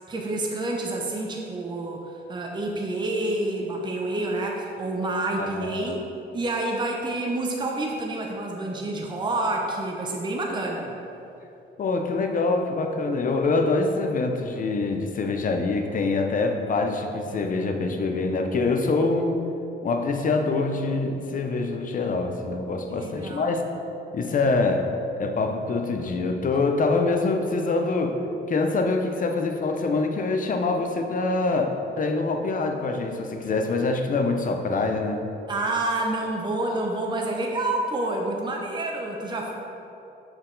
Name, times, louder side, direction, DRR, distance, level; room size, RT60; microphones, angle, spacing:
voice 1, 0.1-6.0 6.3-11.0 22.9-23.6 35.5-39.5, right 2 dB, 25° right, 0 dB, 0.7 m, -28 dB
voice 2, 5.4-6.0 11.8-19.4 19.8-23.6 24.1-24.8 25.2-28.2 28.5-35.2, left 3 dB, 45° left, 4 dB, 0.6 m, -25 dB
5.9 x 4.4 x 3.8 m, 2.9 s
cardioid pair, 90°, 20 cm